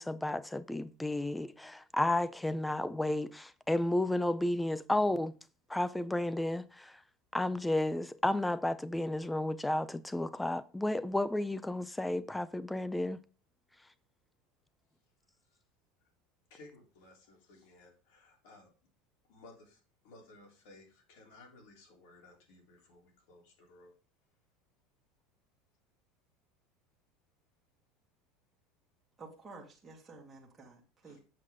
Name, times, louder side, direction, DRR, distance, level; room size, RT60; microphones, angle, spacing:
voice 1, 0.0-5.3 5.7-6.9 7.3-13.2, left 1 dB, 5° left, 0.4 m, -32 dB
voice 2, 16.5-18.7 19.3-19.8 20.0-23.9 31.1-31.2, left 2 dB, 75° left, 3.5 m, -57 dB
voice 3, 29.2-31.2, right 3 dB, 10° right, 2.0 m, -51 dB
7.8 x 7.6 x 3.7 m
cardioid pair, 170°, 0 cm